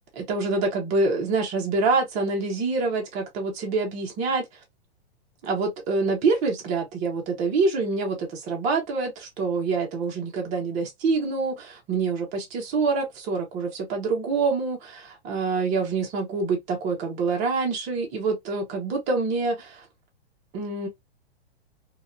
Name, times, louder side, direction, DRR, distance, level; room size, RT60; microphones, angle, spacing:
voice 1, 0.2-4.4 5.4-19.9 20.5-20.9, right 4 dB, 20° right, 0.7 m, -26 dB
2.8 x 2.2 x 2.4 m
hypercardioid pair, 150°, 32 cm